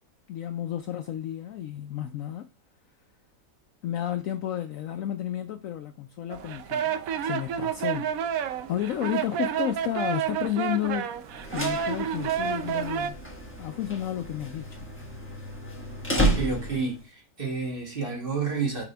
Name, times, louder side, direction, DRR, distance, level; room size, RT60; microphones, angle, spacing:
voice 1, 0.3-2.4 3.8-6.9 7.2-8.1 8.5-11.0 11.5-13.2 13.6-14.8, left 11 dB, 70° left, 0.8 m, -31 dB
sound 1, 6.3-13.1, right 8 dB, 70° right, 0.9 m, -30 dB
sound 2, 11.3-17.0, right 1 dB, 10° left, 1.1 m, -31 dB
voice 2, 16.1-18.8, right 4 dB, 35° right, 1.7 m, -30 dB
6.0 x 3.6 x 4.4 m
omnidirectional pair, 1.7 m